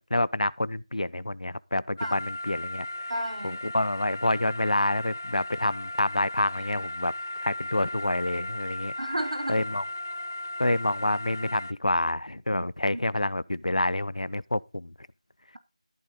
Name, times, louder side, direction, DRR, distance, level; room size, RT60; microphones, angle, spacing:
voice 1, 0.0-3.1 3.4-7.1 7.4-8.9 9.5-9.8 10.6-14.9, left 1 dB, 80° left, 0.9 m, -28 dB
sound 1, 2.0-11.7, left 1 dB, 25° left, 0.6 m, -36 dB
voice 2, 3.1-3.6 9.0-9.6 12.5-13.0, right 1 dB, 65° right, 2.6 m, -33 dB
14.0 x 8.6 x 4.1 m
figure-of-eight pair, 180°, 4 cm